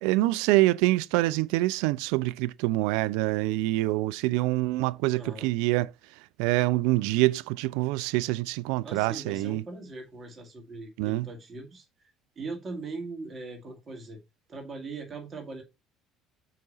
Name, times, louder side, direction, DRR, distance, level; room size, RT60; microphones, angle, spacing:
voice 1, 0.0-5.9 6.4-9.6 11.0-11.3, right 19 dB, 75° right, 0.4 m, -25 dB
voice 2, 5.1-5.5 8.8-14.2 14.5-15.6, right 3 dB, 40° right, 2.2 m, -40 dB
6.3 x 5.0 x 4.1 m
hypercardioid pair, 65°, 0 cm